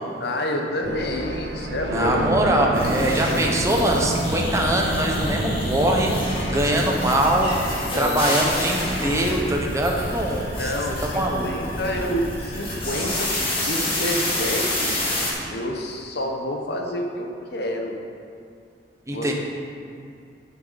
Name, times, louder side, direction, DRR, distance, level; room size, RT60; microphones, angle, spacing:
voice 1, 0.2-2.2 2.5-2.7 7.8-8.2 10.6-14.9 15.5-17.9 19.1-19.3, left 1 dB, 60° left, 2 dB, 1.0 m, -28 dB
sound 1, 0.8-13.3, right 1 dB, 70° right, 0.9 m, -32 dB
voice 2, 1.9-10.7 11.0-11.6 19.1-19.3, right 1 dB, 15° right, 0 dB, 1.0 m, -23 dB
sound 2, 2.7-15.3, left 1 dB, 30° left, 2.0 m, -28 dB
10.5 x 6.6 x 4.1 m, 2.3 s
head